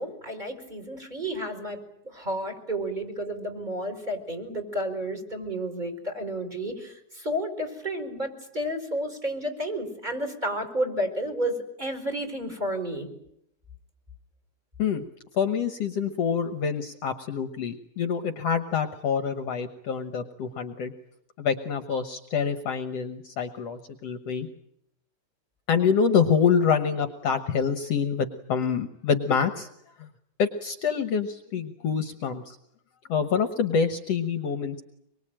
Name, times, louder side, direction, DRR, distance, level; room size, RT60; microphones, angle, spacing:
voice 1, 0.0-13.1, right 1 dB, 15° right, 7 dB, 4.7 m, -31 dB
voice 2, 15.3-20.9 21.4-24.5 25.7-29.7 30.0-30.1 30.4-32.6 33.1-34.8, left 6 dB, 60° left, 9 dB, 2.1 m, -26 dB
25.5 x 23.5 x 9.0 m, 0.75 s
omnidirectional pair, 3.4 m